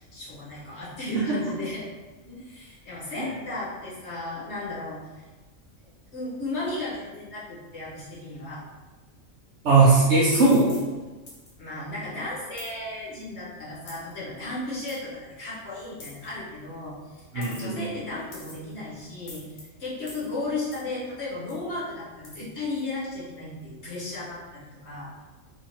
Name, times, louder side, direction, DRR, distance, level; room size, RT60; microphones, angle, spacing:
voice 1, 0.0-1.9 2.2-5.2 5.8-8.6 11.6-25.3, left 2 dB, 60° left, -8 dB, 1.5 m, -35 dB
voice 2, 9.6-10.8 17.3-17.9, right 3 dB, 70° right, -6 dB, 0.9 m, -19 dB
sound 1, 10.3-10.9 11.3-11.5 12.6-12.7 13.9-14.1 14.9-15.0 16.0-16.3 17.4-17.8 18.3-18.7 19.3-19.6 20.1-20.3 20.7-20.9 21.5-21.6 22.2-22.3, left 2 dB, 85° left, 1.3 m, -44 dB
3.7 x 2.9 x 2.9 m, 1.3 s
omnidirectional pair, 1.3 m